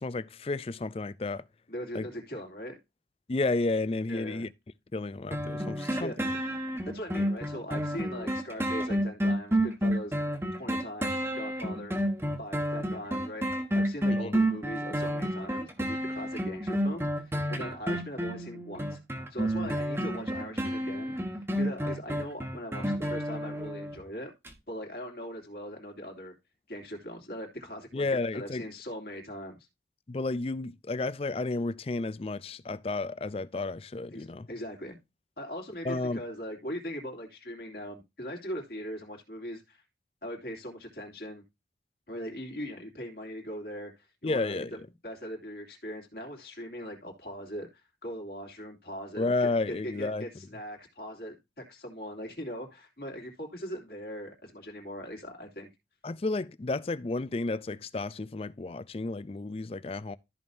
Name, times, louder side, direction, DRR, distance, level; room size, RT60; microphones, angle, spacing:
voice 1, 0.0-1.4 1.9-2.0 3.3-4.5 4.9-6.1 14.2-14.4 27.9-28.6 30.1-34.5 35.8-36.2 44.2-44.7 49.2-50.2 56.0-60.2, left 3 dB, 35° left, 0.4 m, -32 dB
voice 2, 1.7-2.8 4.1-4.5 6.0-6.2 6.8-10.1 10.6-12.0 12.4-13.5 13.7-19.0 19.3-24.3 24.7-26.4 26.7-29.6 34.1-35.0 35.4-39.8 40.2-41.4 42.1-55.7, equal, 60° left, 2.8 m, -40 dB
sound 1, 5.3-24.0 24.5-24.6, equal, 15° right, 1.3 m, -30 dB
14.0 x 5.3 x 2.7 m
head